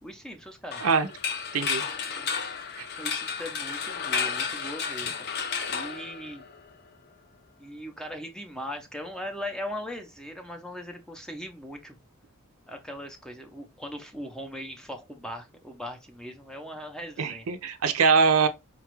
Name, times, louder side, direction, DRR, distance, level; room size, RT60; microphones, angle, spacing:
voice 1, 0.0-0.9 2.1-2.3 2.9-6.4 7.6-11.9 12.7-17.5, equal, 5° left, 0.5 m, -39 dB
sound 1, 0.7-6.7, left 6 dB, 45° left, 0.6 m, -32 dB
voice 2, 1.5-1.8 2.8-2.9 17.2-18.5, right 5 dB, 70° right, 0.5 m, -23 dB
5.0 x 2.3 x 3.0 m
head